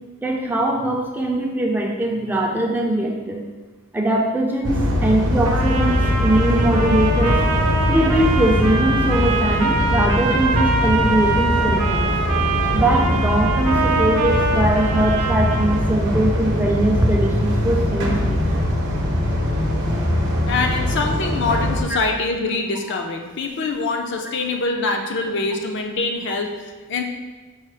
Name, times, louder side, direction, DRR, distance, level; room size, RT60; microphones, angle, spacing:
voice 1, 0.2-3.4 3.9-7.4 7.9-12.1 12.7-18.5 21.9-22.0, right 1 dB, 10° right, -1 dB, 0.4 m, -21 dB
sound 1, 4.6-21.8, left 1 dB, 55° right, 0.7 m, -21 dB
Trumpet, 5.4-15.9, right 3 dB, 90° right, 0.5 m, -24 dB
voice 2, 20.5-27.0, left 3 dB, 55° left, 3 dB, 0.5 m, -24 dB
5.4 x 2.0 x 4.8 m, 1.3 s
head